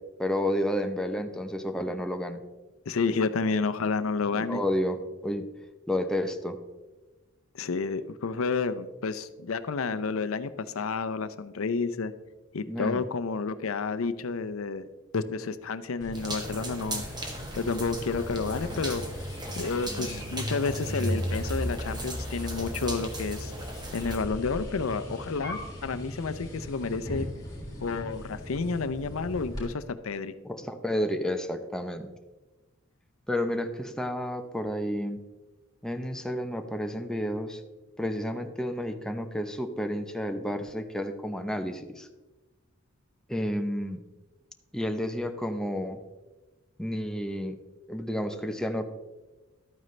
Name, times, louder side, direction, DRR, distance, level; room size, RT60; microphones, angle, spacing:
voice 1, 0.2-2.4 4.3-5.5 5.9-6.6 12.7-13.0 30.4-32.1 33.3-35.2 35.8-37.6 38.0-42.1 43.3-44.0 44.7-46.0 46.8-47.6 47.9-48.8, equal, 5° left, 6 dB, 0.7 m, -31 dB
voice 2, 2.9-4.6 7.5-12.1 12.5-14.9 15.1-17.0 17.5-19.0 19.6-23.5 23.9-27.3 27.8-30.3, left 4 dB, 85° left, 12 dB, 0.6 m, -30 dB
sound 1, 16.0-29.7, equal, 20° left, 3.6 m, -37 dB
sound 2, 16.1-24.2, right 1 dB, 20° right, 1.4 m, -39 dB
12.5 x 9.0 x 3.2 m, 1.2 s
head